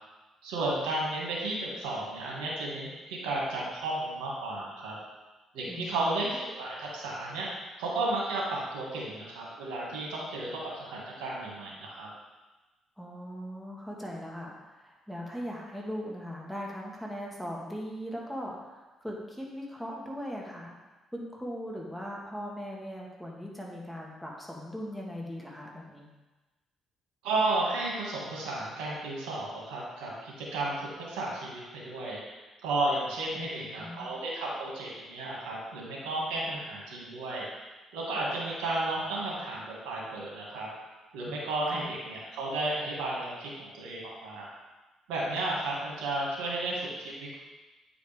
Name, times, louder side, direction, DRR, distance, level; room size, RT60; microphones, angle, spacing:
voice 1, 0.4-5.0 5.5-7.5 7.8-12.1 27.2-37.5 37.9-40.7 41.1-44.5 45.1-47.3, right 2 dB, 90° right, -4 dB, 1.9 m, -33 dB
voice 2, 5.7-6.2 13.0-20.7 21.1-26.1 33.3-34.1 41.7-41.8, equal, ahead, -2 dB, 1.7 m, -39 dB
9.0 x 5.0 x 3.5 m, 1.2 s
supercardioid pair, 75°, 0 cm